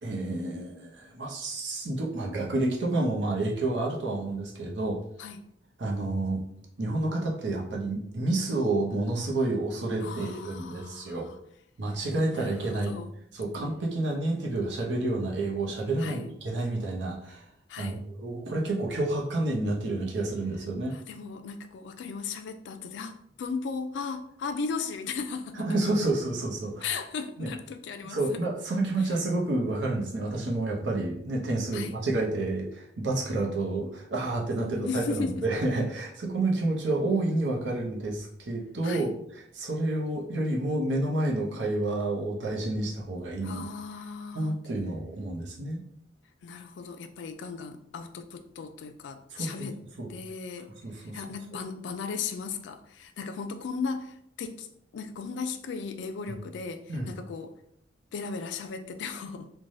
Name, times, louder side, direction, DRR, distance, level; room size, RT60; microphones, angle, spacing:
voice 1, 0.0-5.0 5.8-6.4 6.8-11.3 11.8-12.9 13.3-17.4 17.8-20.9 25.6-26.9 27.4-27.5 28.1-39.1 39.5-43.6 44.3-45.8 49.3-49.5 50.0-50.1 50.8-51.2 56.3-56.4 56.9-57.1, right 2 dB, 75° right, 0.7 m, -29 dB
voice 2, 10.0-11.4 12.3-13.1 16.0-16.3 17.7-18.0 20.9-25.6 26.8-28.4 31.7-31.9 34.6-35.5 38.8-39.1 43.4-44.6 46.4-49.8 50.1-54.7 54.9-57.5 58.1-59.5, left 5 dB, 75° left, 0.3 m, -36 dB
3.1 x 2.2 x 2.6 m
head